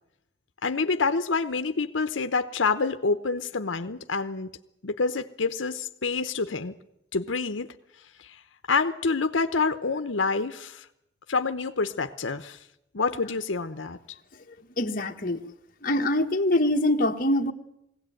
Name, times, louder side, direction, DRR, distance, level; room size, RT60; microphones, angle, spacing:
voice 1, 0.6-4.5 4.8-6.7 7.1-7.7 8.7-10.8 11.3-12.6 12.9-14.0, left 4 dB, 90° left, 9 dB, 0.9 m, -27 dB
voice 2, 14.8-15.4 15.8-17.5, left 1 dB, 45° left, 3 dB, 1.4 m, -24 dB
21.0 x 17.0 x 9.2 m, 0.81 s
head